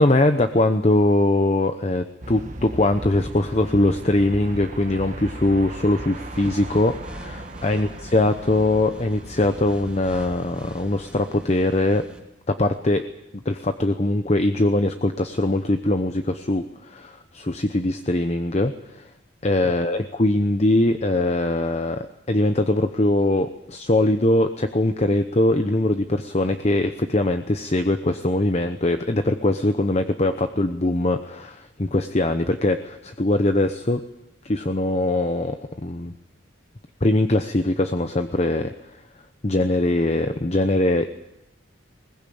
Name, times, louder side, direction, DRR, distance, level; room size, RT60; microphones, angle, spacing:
voice 1, 0.0-12.0 12.5-13.0 13.4-19.1 19.4-34.0 34.4-36.1 37.0-38.7 39.4-41.2, left 1 dB, 35° left, 8 dB, 0.8 m, -22 dB
sound 1, 2.2-10.8, right 1 dB, 40° right, 1.5 m, -37 dB
sound 2, 6.1-12.2, right 1 dB, 5° right, 2.8 m, -44 dB
21.0 x 20.0 x 8.6 m, 0.90 s
head